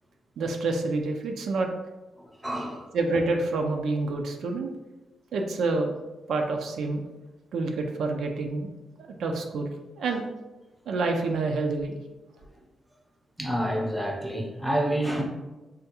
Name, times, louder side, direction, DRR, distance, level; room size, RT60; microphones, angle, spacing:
voice 1, 0.4-1.7 2.9-4.7 5.3-5.9 6.3-7.0 7.5-8.7 9.0-10.2 10.9-12.0, right 3 dB, 80° right, 3 dB, 0.3 m, -28 dB
voice 2, 2.4-2.9 13.4-15.2, right 1 dB, 5° right, 0 dB, 0.5 m, -28 dB
3.4 x 2.2 x 2.8 m, 1.1 s
cardioid pair, 110°, 0 cm